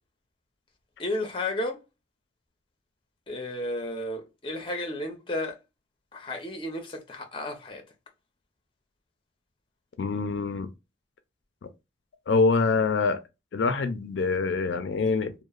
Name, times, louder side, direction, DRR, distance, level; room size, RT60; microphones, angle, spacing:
voice 1, 1.0-1.8 3.3-5.6 6.1-7.8, left 1 dB, 30° left, 0.6 m, -33 dB
voice 2, 10.0-10.7 12.3-13.2 13.5-15.3, left 4 dB, 75° left, 0.4 m, -25 dB
2.9 x 2.0 x 2.2 m
head